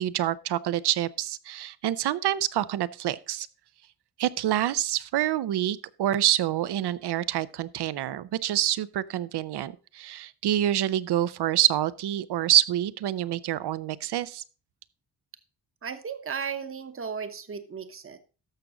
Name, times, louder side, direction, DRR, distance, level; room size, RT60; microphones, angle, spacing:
voice 1, 0.0-3.5 4.2-14.4, right 12 dB, 70° right, 0.7 m, -27 dB
voice 2, 15.8-18.2, right 6 dB, 30° right, 1.0 m, -35 dB
13.5 x 6.1 x 3.8 m
wide cardioid pair, 140°, 41 cm